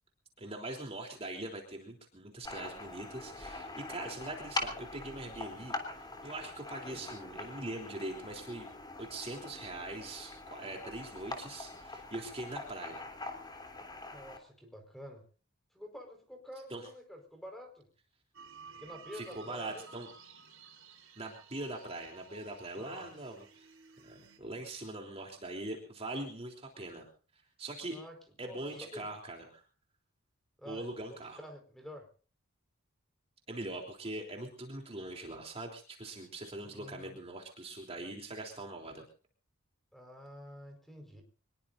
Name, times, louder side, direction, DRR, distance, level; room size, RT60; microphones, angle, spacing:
voice 1, 0.4-8.7 9.0-13.0 16.7-16.8 19.1-20.1 21.2-23.7 24.0-27.1 27.6-28.0 28.4-29.6 30.7-31.4 33.5-39.0, right 2 dB, 30° right, 1 dB, 3.5 m, -42 dB
sound 1, 2.4-14.4, left 2 dB, 20° left, 3.2 m, -43 dB
voice 2, 14.1-15.2 15.7-17.9 18.8-19.9 22.8-23.1 27.9-29.1 30.6-32.1 36.6-37.2 39.9-41.2, equal, ahead, 4 dB, 4.7 m, -49 dB
sound 2, 18.3-24.4, right 4 dB, 65° right, 6.8 m, -54 dB
25.0 x 21.0 x 2.7 m, 0.40 s
head